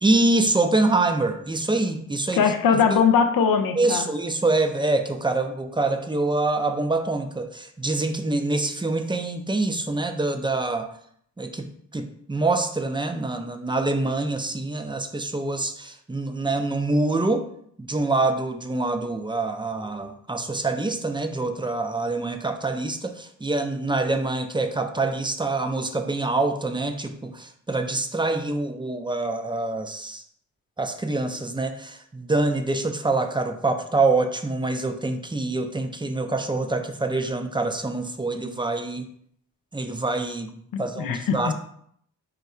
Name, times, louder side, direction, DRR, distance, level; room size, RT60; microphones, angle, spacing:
voice 1, 0.0-2.4 2.9-3.0 3.7-10.9 11.4-11.7 11.9-17.5 17.8-30.2 30.8-39.1 39.7-40.5 40.8-41.5, right 2 dB, 15° right, 7 dB, 0.5 m, -25 dB
voice 2, 2.4-4.1 40.7-41.5, left 6 dB, 80° left, 7 dB, 0.5 m, -21 dB
3.8 x 2.3 x 4.2 m, 0.66 s
cardioid pair, 55°, 33 cm